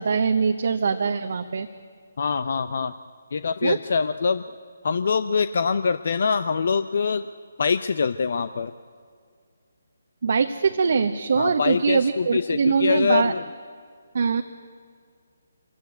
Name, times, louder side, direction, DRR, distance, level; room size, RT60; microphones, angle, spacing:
voice 1, 0.0-1.7 3.6-3.8 10.2-13.3 14.1-14.4, right 5 dB, 55° right, 6 dB, 1.0 m, -22 dB
voice 2, 2.2-2.9 3.3-4.4 4.8-7.2 7.6-8.7 11.4-13.4, left 5 dB, 55° left, 12 dB, 0.7 m, -24 dB
25.5 x 16.0 x 9.4 m, 2.1 s
figure-of-eight pair, 150°, 0 cm